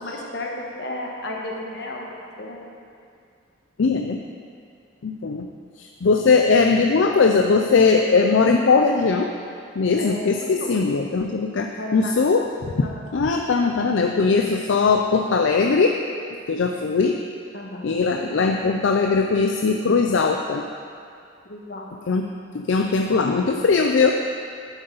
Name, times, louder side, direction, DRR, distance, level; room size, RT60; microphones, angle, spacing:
voice 1, 0.0-2.1 2.4-2.7 10.0-10.7 11.8-12.1 12.8-13.0 17.5-18.0 21.4-22.1, left 1 dB, 55° left, -1 dB, 1.4 m, -33 dB
voice 2, 3.8-4.2 5.0-5.5 5.8-9.3 9.8-12.8 13.1-16.0 16.5-17.2 17.8-20.6 22.1-22.3 22.5-24.1, left 4 dB, 70° left, 3 dB, 0.5 m, -20 dB
11.5 x 8.0 x 4.0 m, 2.4 s
head